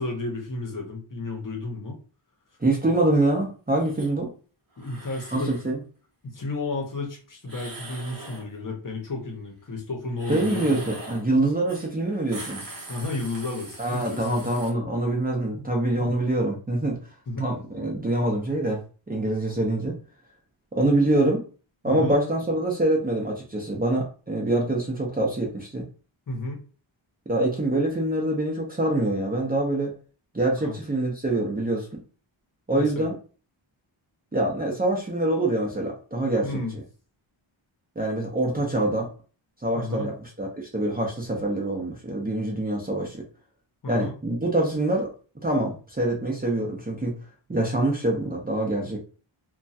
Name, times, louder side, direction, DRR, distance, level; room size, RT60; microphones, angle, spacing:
voice 1, 0.0-2.0 4.8-5.6 6.2-10.9 12.9-14.3 16.0-16.1 17.3-17.5 21.9-22.2 26.3-26.6 30.6-30.7 32.7-33.1 36.4-36.8 39.7-40.1 43.8-44.1, left 2 dB, 40° left, 2 dB, 0.9 m, -32 dB
voice 2, 2.6-4.3 5.3-5.8 10.3-12.6 13.8-17.0 17.4-18.8 19.1-20.0 20.7-21.5 21.8-25.8 27.3-29.9 30.3-32.0 32.7-33.1 34.3-36.6 38.0-39.1 39.6-43.2 43.9-45.1 45.4-47.2 47.5-49.0, right 1 dB, 20° right, -2 dB, 0.7 m, -25 dB
sound 1, 3.8-4.1 4.8-5.7 7.4-8.5 10.1-11.3 11.7-11.9 12.2-14.7, right 2 dB, 40° right, 1.1 m, -41 dB
2.9 x 2.3 x 2.6 m, 0.37 s
wide cardioid pair, 130°, 49 cm